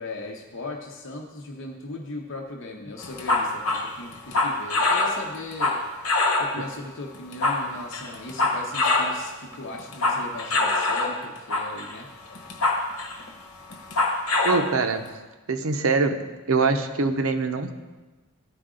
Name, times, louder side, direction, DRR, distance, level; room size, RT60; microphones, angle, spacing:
voice 1, 0.0-5.8 6.0-12.1, left 2 dB, 60° left, 0 dB, 0.8 m, -38 dB
sound 1, 3.0-6.6 7.1-9.2 9.5-11.2 11.5-11.9 12.3-13.3 13.7-14.7, left 2 dB, 85° left, 1.3 m, -24 dB
voice 2, 14.4-15.1 15.5-16.2 16.5-17.7, right 4 dB, 65° right, 7 dB, 0.7 m, -23 dB
14.0 x 4.9 x 3.8 m, 1.2 s
head